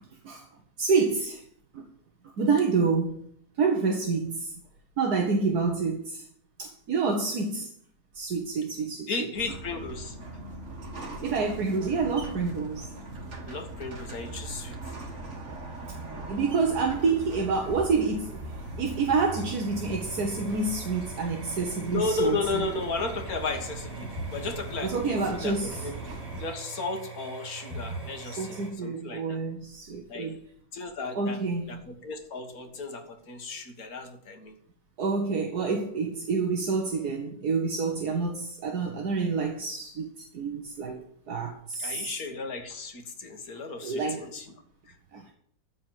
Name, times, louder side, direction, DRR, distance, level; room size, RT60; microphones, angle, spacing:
voice 1, 0.8-1.4 1.7-1.8 2.4-3.3 3.6-4.5 5.0-6.2 6.6-7.7 8.2-9.3 11.2-12.9 16.1-18.4 18.8-22.7 24.8-25.7 28.2-30.4 31.1-31.8 35.0-40.1 40.3-41.0 41.3-42.1 43.8-44.3 45.1-45.3, right 4 dB, 75° right, 1.9 m, -28 dB
voice 2, 9.1-10.2 13.4-14.8 21.9-26.0 26.4-29.4 30.1-30.3 30.7-31.4 31.7-34.5 41.8-44.5, left 3 dB, 65° left, 2.2 m, -34 dB
sound 1, 9.3-26.5, right 2 dB, 45° right, 2.2 m, -40 dB
sound 2, 16.5-28.7, right 3 dB, 15° right, 3.3 m, -42 dB
14.5 x 4.8 x 8.9 m
omnidirectional pair, 1.7 m